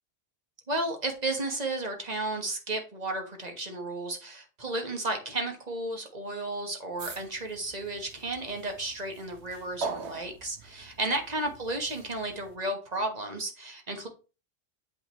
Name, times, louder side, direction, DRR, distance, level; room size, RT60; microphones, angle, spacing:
voice 1, 0.7-14.1, right 2 dB, 40° right, 3 dB, 1.4 m, -33 dB
sound 1, 7.0-12.6, right 4 dB, 80° right, 1.2 m, -42 dB
8.2 x 5.0 x 3.0 m, 0.33 s
omnidirectional pair, 1.1 m